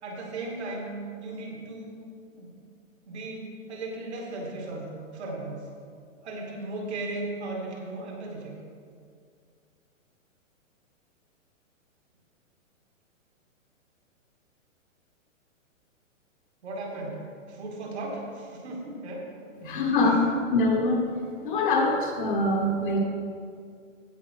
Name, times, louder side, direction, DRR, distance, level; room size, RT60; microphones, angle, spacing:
voice 1, 0.0-2.0 2.3-2.5 3.1-5.6 6.2-8.5 16.6-17.2 17.5-19.3 19.5-20.1, right 2 dB, 55° right, -1 dB, 2.5 m, -36 dB
voice 2, 19.6-21.0 21.4-23.0, left 2 dB, 40° left, 1 dB, 1.1 m, -24 dB
16.0 x 5.3 x 4.7 m, 2.2 s
hypercardioid pair, 170°, 40 cm